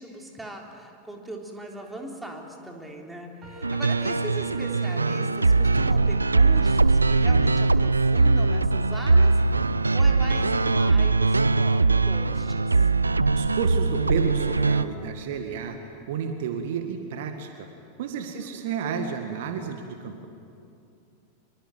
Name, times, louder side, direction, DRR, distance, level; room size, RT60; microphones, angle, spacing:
voice 1, 0.0-9.4 9.9-12.9 18.3-18.6, right 1 dB, 5° right, 1 dB, 3.5 m, -40 dB
sound 1, 3.4-5.9, right 1 dB, 30° right, 7.1 m, -47 dB
sound 2, 3.6-14.8, right 3 dB, 80° right, 0.5 m, -21 dB
voice 2, 13.4-15.8 16.1-17.7 18.0-20.3, right 7 dB, 55° right, 6 dB, 1.9 m, -31 dB
25.0 x 23.0 x 9.1 m, 2.6 s
figure-of-eight pair, 90°, 0 cm